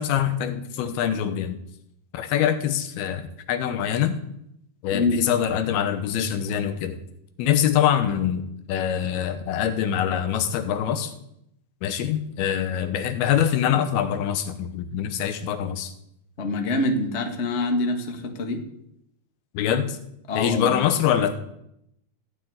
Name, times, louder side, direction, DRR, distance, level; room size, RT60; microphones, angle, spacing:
voice 1, 0.0-1.6 2.1-4.2 4.8-7.0 7.4-11.1 11.8-15.9 19.5-20.0 20.3-21.4, left 9 dB, 85° left, 10 dB, 3.0 m, -24 dB
voice 2, 16.4-18.6 20.3-20.8, left 2 dB, 30° left, 4 dB, 1.2 m, -25 dB
16.0 x 6.3 x 9.4 m, 0.80 s
omnidirectional pair, 4.3 m